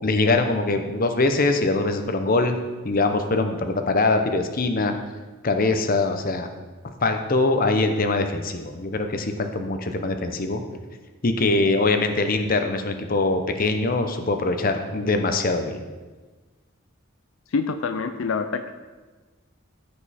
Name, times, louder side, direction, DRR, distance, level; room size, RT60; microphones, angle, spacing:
voice 1, 0.0-2.6 2.8-4.9 5.4-6.5 7.0-10.6 11.2-15.8, left 3 dB, 45° left, 7 dB, 0.8 m, -23 dB
voice 2, 17.5-18.7, left 4 dB, 70° left, 8 dB, 0.4 m, -26 dB
14.0 x 5.3 x 4.2 m, 1.3 s
head